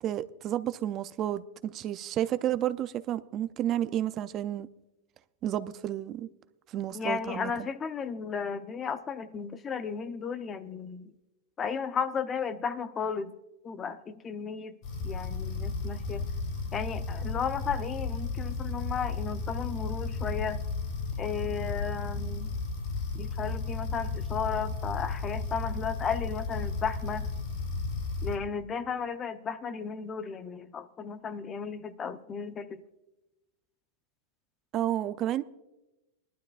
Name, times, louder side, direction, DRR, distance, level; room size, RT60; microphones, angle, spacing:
voice 1, 0.0-4.7 5.4-6.3 6.7-7.7 34.7-35.4, right 12 dB, 35° right, 0.4 m, -31 dB
voice 2, 6.9-11.1 11.6-13.3 13.6-14.8 15.0-16.3 16.7-20.6 21.2-22.5 23.1-27.3 28.2-32.8, left 6 dB, 25° left, 0.6 m, -34 dB
sound 1, 14.8-28.4, left 3 dB, 50° left, 4.6 m, -34 dB
20.0 x 12.0 x 2.4 m
hypercardioid pair, 115°, 0 cm